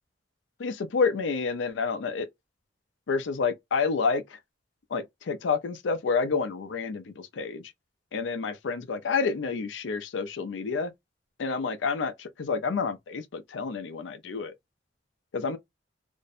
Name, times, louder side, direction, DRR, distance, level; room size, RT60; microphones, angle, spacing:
voice 1, 0.6-2.3 3.1-4.2 4.9-7.6 8.1-10.9 11.4-14.5 15.3-15.6, left 5 dB, 80° left, 0.5 m, -29 dB
2.5 x 2.0 x 2.5 m
head